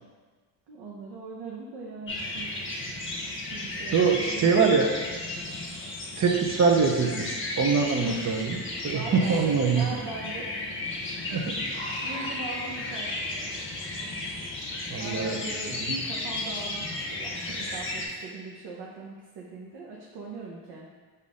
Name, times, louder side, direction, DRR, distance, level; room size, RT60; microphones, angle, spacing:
voice 1, 0.7-2.6 3.5-4.8 8.9-10.6 11.5-13.5 15.0-20.9, right 3 dB, 70° right, -3 dB, 0.9 m, -40 dB
sound 1, 2.1-18.1, left 2 dB, 30° left, 1.0 m, -34 dB
voice 2, 3.9-4.9 6.2-9.9 11.3-11.6 12.0-12.3 14.9-15.4 15.7-16.0, right 5 dB, 40° right, 2 dB, 0.7 m, -24 dB
3.9 x 2.7 x 4.8 m, 1.5 s
cardioid pair, 85°, 42 cm